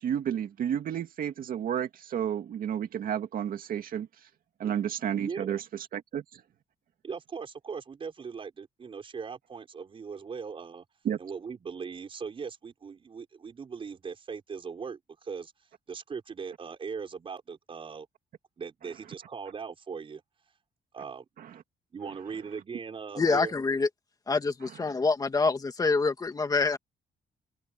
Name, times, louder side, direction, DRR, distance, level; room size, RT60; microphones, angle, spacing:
voice 1, 0.0-4.1 4.6-6.4 11.0-11.2 21.4-21.5, right 9 dB, 60° right, 2.2 m, -31 dB
voice 2, 5.1-5.6 7.0-10.8 11.2-15.5 15.9-18.1 18.6-20.2 20.9-21.2 21.9-23.5, right 5 dB, 35° right, 5.6 m, -39 dB
voice 3, 23.2-23.9 24.3-26.8, left 4 dB, 25° left, 2.3 m, -26 dB
cardioid pair, 165°, 16 cm